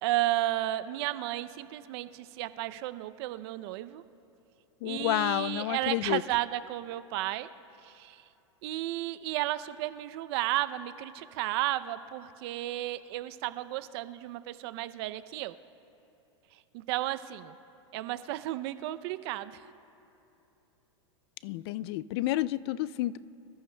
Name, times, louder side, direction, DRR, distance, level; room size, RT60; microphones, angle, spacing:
voice 1, 0.0-4.0 4.8-7.5 7.8-8.2 8.6-15.5 16.7-17.6 17.9-19.6, right 15 dB, 55° right, 13 dB, 0.6 m, -33 dB
voice 2, 4.8-6.2 21.4-23.2, left 16 dB, 55° left, 18 dB, 0.4 m, -30 dB
26.0 x 13.5 x 2.2 m, 2.8 s
hypercardioid pair, 120°, 16 cm